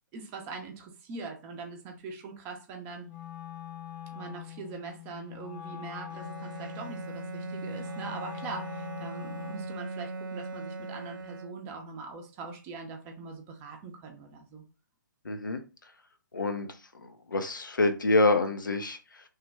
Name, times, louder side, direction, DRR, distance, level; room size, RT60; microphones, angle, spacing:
voice 1, 0.1-3.1 4.1-14.6, right 4 dB, 20° right, 0.6 m, -42 dB
Wind instrument woodwind instrument, 3.0-9.8, left 11 dB, 20° left, 0.3 m, -43 dB
Bowed string instrument, 6.1-11.9, right 3 dB, 80° right, 0.4 m, -39 dB
voice 2, 15.2-15.6 16.3-16.7 17.0-19.2, left 2 dB, 75° left, 0.6 m, -27 dB
3.2 x 2.1 x 3.3 m
figure-of-eight pair, 130°, 11 cm